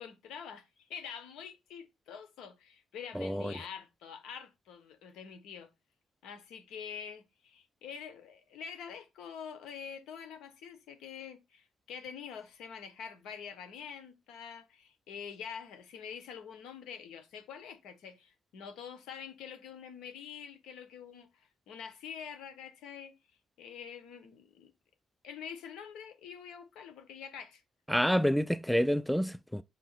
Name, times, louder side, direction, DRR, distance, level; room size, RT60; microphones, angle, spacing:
voice 1, 0.0-5.7 6.2-23.2 23.6-24.7 25.2-27.6, left 7 dB, 85° left, 1.1 m, -46 dB
voice 2, 3.2-3.5 27.9-29.6, equal, ahead, 0.3 m, -28 dB
6.5 x 2.9 x 5.6 m
cardioid pair, 90°, 0 cm